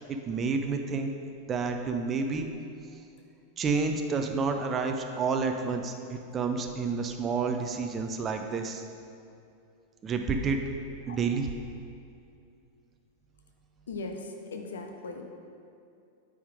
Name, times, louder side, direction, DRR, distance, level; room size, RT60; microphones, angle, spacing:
voice 1, 0.1-1.1 1.5-2.5 3.6-8.8 10.0-10.6 11.1-11.5, right 4 dB, 25° right, 5 dB, 0.5 m, -29 dB
voice 2, 13.9-15.3, left 3 dB, 65° left, 4 dB, 0.7 m, -38 dB
8.7 x 3.6 x 4.9 m, 2.5 s
figure-of-eight pair, 90°, 0 cm